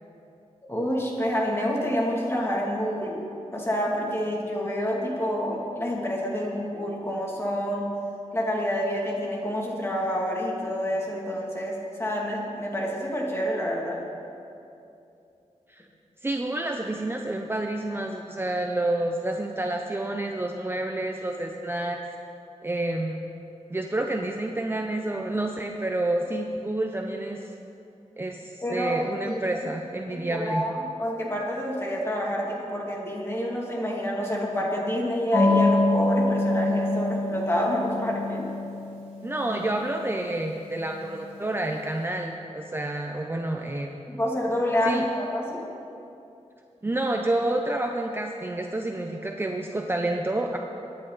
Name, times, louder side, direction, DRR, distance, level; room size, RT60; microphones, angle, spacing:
voice 1, 0.7-3.2 3.5-7.9 8.3-14.0 28.6-29.7 30.1-30.7 31.0-38.5 44.1-45.6, equal, 20° left, -3 dB, 2.7 m, -28 dB
voice 2, 16.2-22.0 22.6-23.2 23.7-27.4 28.2-30.6 39.2-44.0 44.9-45.0 46.8-50.6, right 1 dB, 20° right, 2 dB, 0.7 m, -29 dB
sound 1, 35.3-41.5, left 2 dB, 80° left, 4.0 m, -26 dB
24.0 x 10.0 x 4.1 m, 2.7 s
wide cardioid pair, 125°, 12 cm